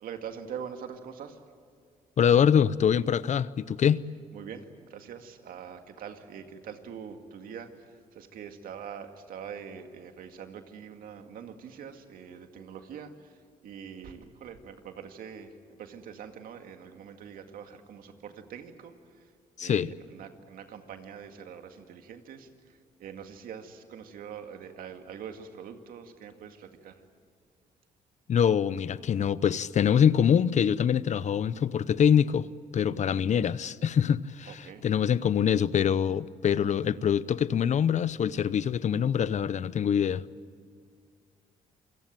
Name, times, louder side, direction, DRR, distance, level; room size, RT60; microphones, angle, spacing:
voice 1, 0.0-1.3 4.3-4.6 4.9-7.7 8.2-13.1 13.6-15.5 15.8-18.9 19.6-19.8 20.1-22.5 23.0-26.9 34.6-34.8, right 7 dB, 75° right, 2.2 m, -43 dB
voice 2, 2.2-4.0 19.6-19.9 28.3-40.2, left 8 dB, 55° left, 0.7 m, -24 dB
27.5 x 18.0 x 9.1 m
cardioid pair, 75°, 15 cm